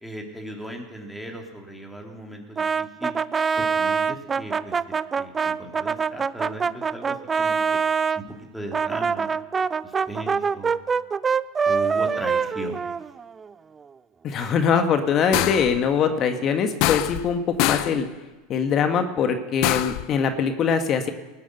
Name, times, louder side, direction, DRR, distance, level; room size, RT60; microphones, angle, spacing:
voice 1, 0.0-3.1 3.6-4.8 5.2-7.8 8.2-9.3 9.8-10.8 11.7-12.9, right 1 dB, ahead, 1 dB, 2.9 m, -37 dB
Brass instrument, 2.6-8.2 8.7-13.5, right 6 dB, 25° right, 0.4 m, -24 dB
voice 2, 14.2-18.1 18.5-21.1, left 6 dB, 40° left, 7 dB, 1.5 m, -22 dB
sound 1, 15.3-15.8 16.8-17.3 17.6-18.0 19.6-20.1, left 16 dB, 60° left, 0.6 m, -24 dB
19.0 x 8.4 x 6.7 m, 1.2 s
hypercardioid pair, 95°, 0 cm